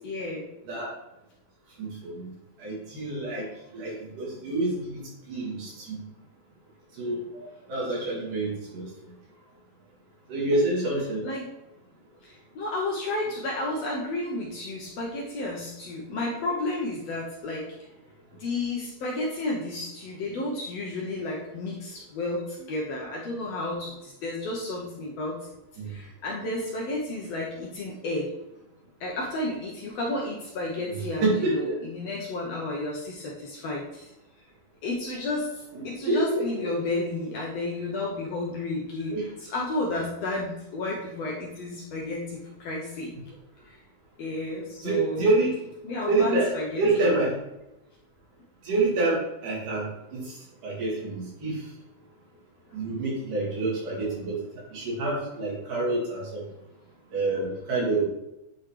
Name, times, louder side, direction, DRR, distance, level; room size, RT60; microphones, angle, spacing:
voice 1, 0.0-0.5 11.2-11.5 12.2-17.7 18.4-25.5 25.9-28.3 29.0-34.1 34.8-35.5 35.8-43.1 44.2-45.2 45.8-47.2, left 2 dB, 65° left, -3 dB, 1.7 m, -32 dB
voice 2, 1.8-2.3 2.6-3.5 3.7-5.0 5.3-6.0 7.0-8.8 10.3-11.2 25.8-25.9 30.9-31.0 31.2-31.8 35.7-36.7 39.1-39.3 44.8-45.5 46.1-46.5 46.8-47.3 48.6-50.3 50.6-51.6 52.7-54.4 54.7-56.4 57.1-58.0, right 2 dB, 75° right, -5 dB, 3.7 m, -27 dB
9.1 x 3.9 x 3.3 m, 0.90 s
omnidirectional pair, 3.8 m